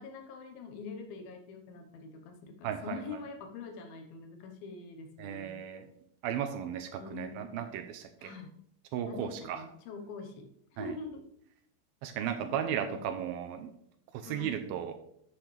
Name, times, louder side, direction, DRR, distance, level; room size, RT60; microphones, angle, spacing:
voice 1, 0.0-5.6 7.0-7.6 8.2-8.5 9.0-11.2 12.4-13.6 14.2-14.7, left 4 dB, 70° left, 4 dB, 2.9 m, -45 dB
voice 2, 2.6-3.0 5.2-5.9 6.2-8.3 8.9-9.6 10.8-11.0 12.0-13.7 14.1-15.0, right 9 dB, 80° right, 7 dB, 2.3 m, -35 dB
12.0 x 7.4 x 3.4 m, 0.71 s
omnidirectional pair, 4.7 m